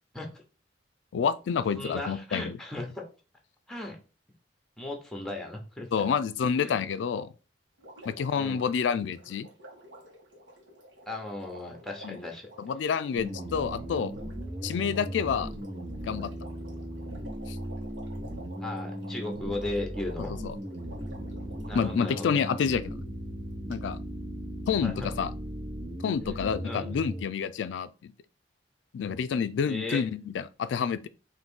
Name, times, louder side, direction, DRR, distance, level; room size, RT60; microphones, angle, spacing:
voice 1, 1.1-2.6 5.9-7.3 8.1-9.5 12.0-12.2 12.6-14.1 14.6-15.5 16.0-16.3 20.4-20.5 21.7-23.0 23.7-24.0 24.7-25.3 26.0-28.1 28.9-31.1, left 6 dB, 85° left, 0.3 m, -28 dB
voice 2, 1.8-3.0 3.7-4.0 4.8-5.9 6.6-6.8 8.4-8.6 11.1-12.5 18.6-20.3 21.6-22.4 24.8-25.1 26.4-26.9 29.6-30.1, left 2 dB, 5° left, 0.8 m, -36 dB
Water, 7.8-22.8 23.7-23.8, right 1 dB, 85° right, 1.2 m, -50 dB
sound 1, 13.1-27.2, equal, 45° right, 1.0 m, -37 dB
3.8 x 2.6 x 3.6 m
head